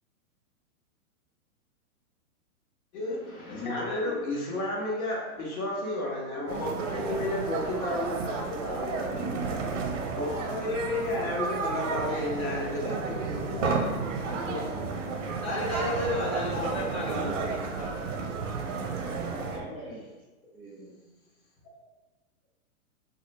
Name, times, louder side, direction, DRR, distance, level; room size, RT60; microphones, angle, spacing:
voice 1, 2.9-9.4 10.1-13.9 14.2-14.7 19.4-19.5, left 1 dB, 70° left, -3 dB, 1.1 m, -32 dB
voice 2, 3.6-4.1 10.7-10.8 13.6-13.8 15.4-18.5, left 1 dB, 50° left, -5 dB, 0.9 m, -34 dB
sound 1, 6.5-19.6, right 4 dB, 60° right, 0.5 m, -32 dB
voice 3, 19.0-20.1 20.5-20.9, right 1 dB, 5° left, -8 dB, 0.5 m, -44 dB
3.1 x 2.4 x 3.0 m, 1.2 s
hypercardioid pair, 180°, 44 cm